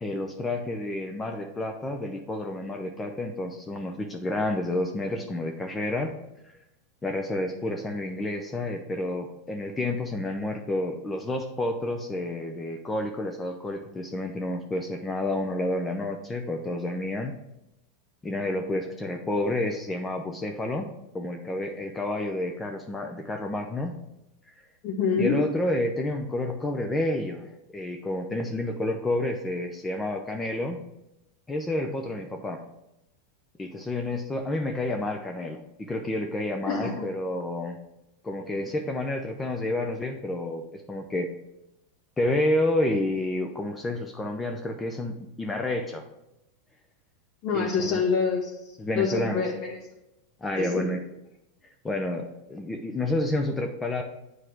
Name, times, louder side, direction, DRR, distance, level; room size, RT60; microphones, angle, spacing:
voice 1, 0.0-6.1 7.0-17.3 18.2-24.0 25.2-30.8 31.5-32.6 33.6-37.8 38.2-41.3 42.2-46.1 47.5-48.0 48.8-49.4 50.4-51.0 51.8-54.0, left 1 dB, 15° left, 4 dB, 0.7 m, -30 dB
voice 2, 24.8-25.4 36.6-36.9 47.4-48.5 49.0-49.8 50.6-50.8, left 5 dB, 45° left, -1 dB, 2.1 m, -26 dB
7.7 x 4.9 x 4.5 m, 0.88 s
hypercardioid pair, 100°, 0 cm